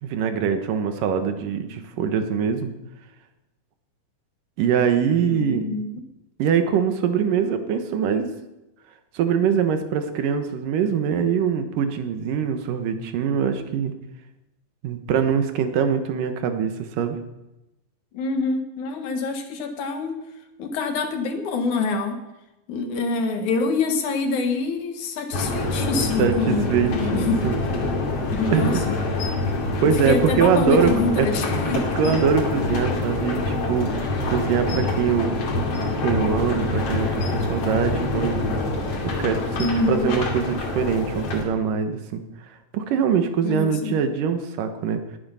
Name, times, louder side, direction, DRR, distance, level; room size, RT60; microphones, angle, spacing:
voice 1, 0.0-2.7 4.6-5.6 6.4-8.3 9.1-13.9 14.8-17.2 26.2-27.6 28.5-28.8 29.8-31.6 31.9-35.3 36.0-38.4 39.2-42.2 42.7-45.0, right 7 dB, 80° right, 8 dB, 2.9 m, -23 dB
voice 2, 5.2-5.9 18.1-20.2 20.6-22.2 22.7-27.4 28.3-28.7 29.8-32.0 39.6-40.1 43.4-44.0, left 3 dB, 65° left, 6 dB, 2.8 m, -26 dB
sound 1, 25.3-41.4, left 2 dB, 50° left, 3.2 m, -26 dB
19.0 x 9.8 x 5.6 m, 0.94 s
omnidirectional pair, 3.8 m